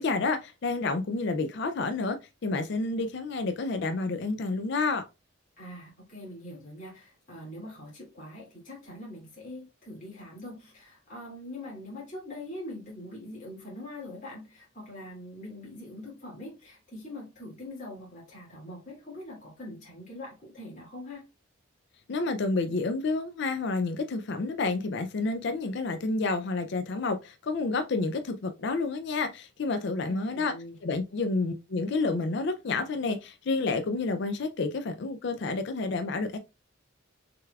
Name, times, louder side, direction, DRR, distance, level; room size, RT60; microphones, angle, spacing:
voice 1, 0.0-5.1 22.1-30.5 30.8-36.4, left 3 dB, 55° left, 0.4 m, -29 dB
voice 2, 5.6-21.2 30.1-30.8, left 1 dB, 40° left, 2.5 m, -43 dB
6.6 x 3.4 x 2.3 m
head